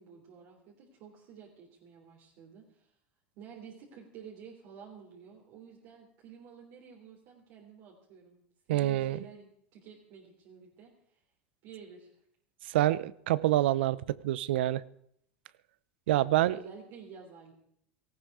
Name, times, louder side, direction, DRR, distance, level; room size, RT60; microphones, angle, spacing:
voice 1, 0.0-2.9 3.4-8.4 8.7-11.2 11.6-12.1 16.1-17.5, right 6 dB, 60° right, -2 dB, 3.5 m, -51 dB
voice 2, 8.7-9.2 12.7-14.8 16.1-16.6, right 15 dB, 80° right, 20 dB, 0.6 m, -27 dB
18.5 x 14.5 x 4.8 m, 0.69 s
hypercardioid pair, 100°, 6 cm